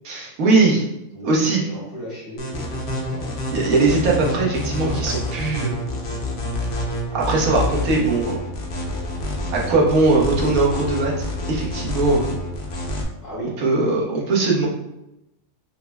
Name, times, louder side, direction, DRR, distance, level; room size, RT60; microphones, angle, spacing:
voice 1, 0.1-0.8 1.2-1.6 3.5-5.8 7.1-8.4 9.5-12.3 13.6-14.7, right 3 dB, 85° right, -3 dB, 1.3 m, -20 dB
voice 2, 1.1-3.5 4.1-4.8 13.2-13.5, right 1 dB, 85° left, -11 dB, 2.2 m, -36 dB
sound 1, 2.4-13.0, left 1 dB, 60° left, 0.8 m, -27 dB
5.3 x 2.0 x 2.2 m, 0.89 s
omnidirectional pair, 1.4 m